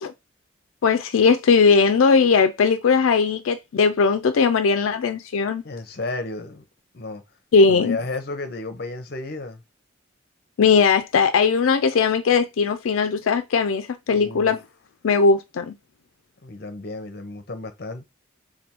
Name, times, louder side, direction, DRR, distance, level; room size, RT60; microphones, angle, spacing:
voice 1, 0.8-5.6 7.5-8.0 10.6-14.6 15.0-15.7, left 5 dB, 85° left, 0.4 m, -19 dB
voice 2, 5.6-6.6 6.9-7.2 7.6-9.6 14.1-14.6 16.4-18.1, left 2 dB, 50° left, 0.7 m, -33 dB
3.4 x 2.3 x 4.3 m
head